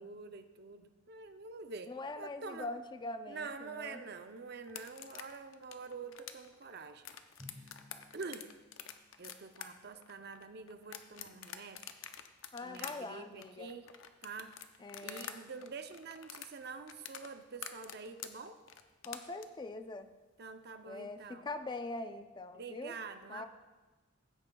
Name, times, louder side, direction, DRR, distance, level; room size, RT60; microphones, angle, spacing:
voice 1, 0.0-2.7 3.3-7.1 7.5-7.8 8.1-8.5 9.2-11.9 12.6-13.9 14.2-14.5 15.0-18.6 20.4-21.5 22.5-23.5, right 4 dB, 55° right, 9 dB, 0.6 m, -46 dB
voice 2, 1.9-4.0 12.5-13.8 14.8-15.3 19.0-20.1 20.8-23.0 23.3-23.5, left 2 dB, 20° left, 9 dB, 0.4 m, -43 dB
sound 1, 4.6-15.4 15.6-19.4, left 9 dB, 80° left, 0.6 m, -47 dB
Drum, 7.4-9.6, left 2 dB, 20° right, 2.1 m, -57 dB
16.0 x 8.8 x 2.3 m, 1.2 s
head